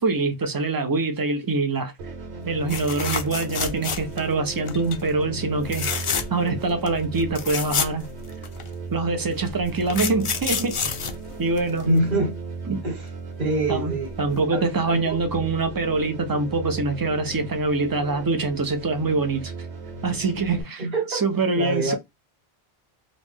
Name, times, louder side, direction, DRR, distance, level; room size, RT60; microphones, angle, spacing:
voice 1, 0.0-1.9 2.5-8.1 8.9-10.8 11.4-11.9 12.7-12.8 13.7-13.9 14.2-19.5 20.0-21.9, right 3 dB, 25° right, 0.6 m, -24 dB
sound 1, 2.0-20.6, right 3 dB, 85° right, 1.1 m, -37 dB
sound 2, 2.7-4.3 4.7-5.0 5.6-6.5 6.9-7.0 7.2-8.7 9.4-12.0 13.9-14.1 14.4-14.5, left 6 dB, 50° left, 0.4 m, -28 dB
voice 2, 11.8-12.4 12.8-13.1 13.4-14.2 14.5-15.2 20.8-21.2 21.5-22.0, right 1 dB, 50° right, 1.5 m, -25 dB
3.1 x 2.5 x 3.6 m
omnidirectional pair, 1.1 m